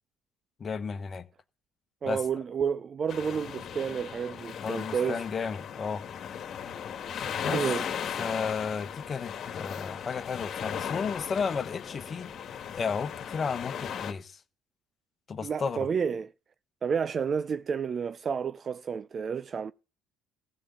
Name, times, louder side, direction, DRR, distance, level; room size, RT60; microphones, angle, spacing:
voice 1, 0.6-1.3 2.0-2.2 4.6-6.0 7.4-7.6 8.2-12.3 12.7-14.4 15.3-15.9, left 5 dB, 35° left, 1.4 m, -33 dB
voice 2, 2.0-5.2 7.4-7.8 15.4-16.3 16.8-19.7, right 6 dB, 40° right, 0.5 m, -30 dB
sound 1, 3.1-14.1, left 8 dB, 55° left, 1.9 m, -37 dB
15.5 x 5.3 x 7.1 m
supercardioid pair, 90°, 0 cm